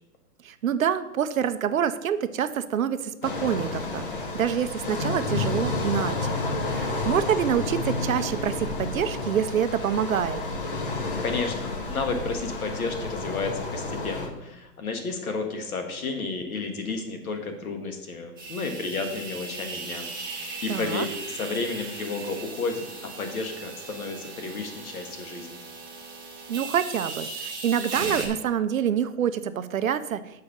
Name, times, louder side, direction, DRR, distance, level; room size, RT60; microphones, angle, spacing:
voice 1, 0.4-6.4 6.7-10.4 20.7-21.1 26.5-30.2, right 9 dB, 60° right, 12 dB, 0.6 m, -26 dB
sound 1, 3.2-14.3, left 3 dB, 35° left, 0.8 m, -30 dB
voice 2, 11.2-22.9 23.2-25.6, left 4 dB, 65° left, 5 dB, 1.6 m, -32 dB
sound 2, 18.4-28.3, right 3 dB, 15° right, 0.6 m, -37 dB
6.9 x 4.8 x 6.5 m, 0.93 s
hypercardioid pair, 180°, 47 cm